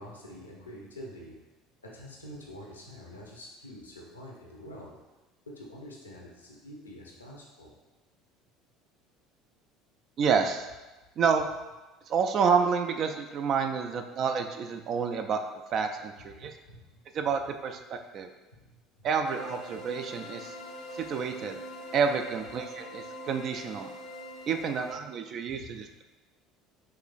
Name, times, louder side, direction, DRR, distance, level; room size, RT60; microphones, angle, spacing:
voice 1, 0.0-1.4 1.8-4.9 5.6-7.7 16.4-17.0 18.6-19.1 25.5-25.8, equal, 85° left, -2 dB, 0.7 m, -46 dB
voice 2, 10.2-10.7 11.2-11.5 12.1-15.4 15.7-16.5 17.1-18.3 19.0-20.5 20.9-21.6 21.9-23.9 24.5-26.0, right 6 dB, 45° right, 6 dB, 0.4 m, -29 dB
sound 1, 19.2-25.0, equal, 50° left, 0.5 m, -43 dB
5.6 x 3.1 x 2.4 m, 1.1 s
figure-of-eight pair, 65°, 0 cm